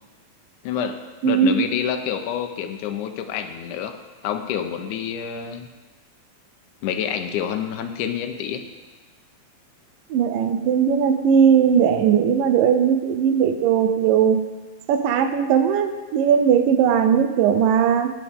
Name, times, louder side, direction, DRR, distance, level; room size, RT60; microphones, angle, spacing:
voice 1, 0.6-4.0 4.2-5.7 6.8-8.6, left 8 dB, 75° left, 6 dB, 1.9 m, -28 dB
voice 2, 1.2-1.6 10.1-14.4 14.9-18.1, right 8 dB, 75° right, 7 dB, 2.4 m, -18 dB
15.0 x 9.0 x 3.6 m, 1.2 s
omnidirectional pair, 4.2 m